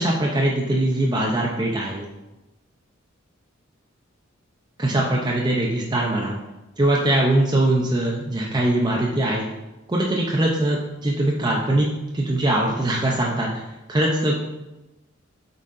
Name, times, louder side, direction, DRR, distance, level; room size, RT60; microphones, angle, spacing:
voice 1, 0.0-2.1 4.8-6.4 6.8-9.5 9.9-11.9 12.1-13.6 13.9-14.4, right 1 dB, 20° right, -2 dB, 0.6 m, -22 dB
7.8 x 4.1 x 3.7 m, 1.0 s
head